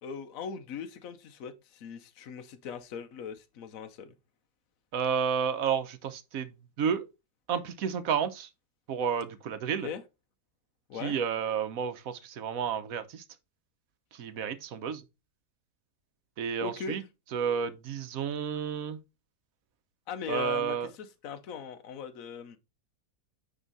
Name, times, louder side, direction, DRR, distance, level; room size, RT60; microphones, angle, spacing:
voice 1, 0.0-4.1 9.8-10.0 10.9-11.2 16.6-17.0 20.1-22.6, left 7 dB, 65° left, 1.3 m, -39 dB
voice 2, 4.9-6.5 6.8-7.0 7.5-8.5 8.9-9.9 11.0-13.2 14.1-15.0 16.4-17.0 17.3-19.0 20.3-20.9, right 7 dB, 70° right, 1.3 m, -31 dB
9.2 x 3.7 x 4.0 m
omnidirectional pair, 1.6 m